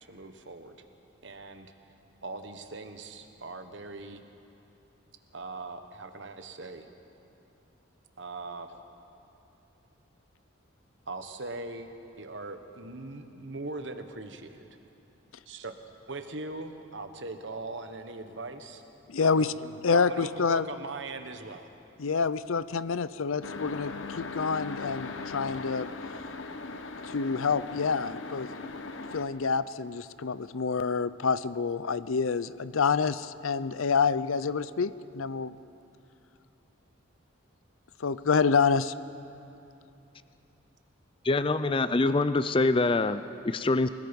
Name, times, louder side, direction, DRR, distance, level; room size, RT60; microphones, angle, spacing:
voice 1, 0.0-0.8 1.2-1.7 2.2-4.2 5.3-6.9 8.2-8.7 11.1-11.9 12.2-14.8 15.5-15.8 16.1-18.8 19.2-21.7, right 3 dB, 60° right, 7 dB, 1.3 m, -40 dB
voice 2, 19.1-19.5 19.8-20.7 22.0-25.9 27.0-28.5 29.1-35.6 38.0-38.9, left 5 dB, 85° left, 16 dB, 0.6 m, -27 dB
sound 1, 23.4-29.2, left 3 dB, 70° left, 1.1 m, -39 dB
voice 3, 41.2-43.9, left 3 dB, 25° left, 12 dB, 0.4 m, -25 dB
28.5 x 18.0 x 5.4 m, 2.8 s
head